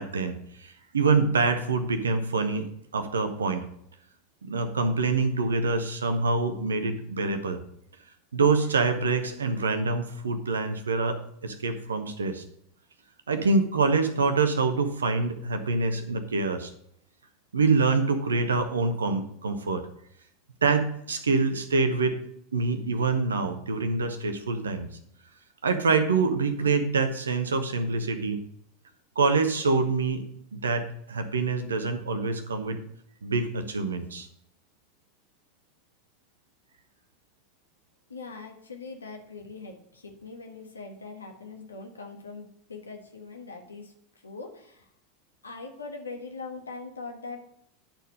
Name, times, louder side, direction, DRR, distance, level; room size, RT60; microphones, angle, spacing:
voice 1, 0.0-3.7 4.4-7.6 8.3-12.4 13.3-16.7 17.5-19.9 20.6-22.2 22.5-24.9 25.6-28.4 29.2-30.2 30.5-32.8 33.2-34.3, right 4 dB, 75° right, 8 dB, 1.0 m, -26 dB
voice 2, 38.1-43.9 44.2-44.9 45.4-47.4, left 4 dB, 80° left, 3 dB, 1.4 m, -41 dB
10.5 x 4.5 x 5.3 m, 0.72 s
figure-of-eight pair, 85°, 0 cm